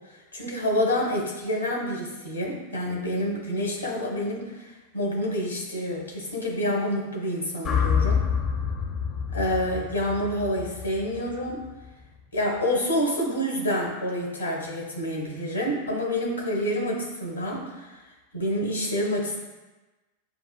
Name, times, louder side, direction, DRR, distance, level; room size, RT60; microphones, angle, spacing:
voice 1, 0.3-8.2 9.3-11.6 12.3-17.9 18.3-19.4, equal, 80° left, -1 dB, 1.0 m, -28 dB
sound 1, 7.6-11.9, left 7 dB, 30° left, 0.5 m, -27 dB
6.8 x 2.4 x 2.3 m, 1.2 s
figure-of-eight pair, 90°, 0 cm